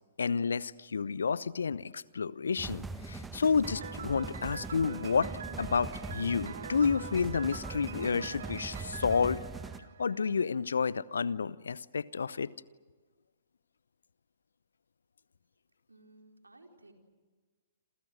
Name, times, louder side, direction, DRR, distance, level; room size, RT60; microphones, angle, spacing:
voice 1, 0.2-5.3 5.6-9.4 10.0-12.5, left 5 dB, 70° left, 20 dB, 0.8 m, -30 dB
sound 1, 2.6-9.8, right 3 dB, 10° right, 1.5 m, -42 dB
Piano, 3.6-10.5, right 7 dB, 60° right, 1.6 m, -45 dB
voice 2, 15.9-16.9, right 2 dB, 80° right, 3 dB, 4.6 m, -57 dB
28.0 x 28.0 x 6.5 m, 1.4 s
figure-of-eight pair, 120°, 0 cm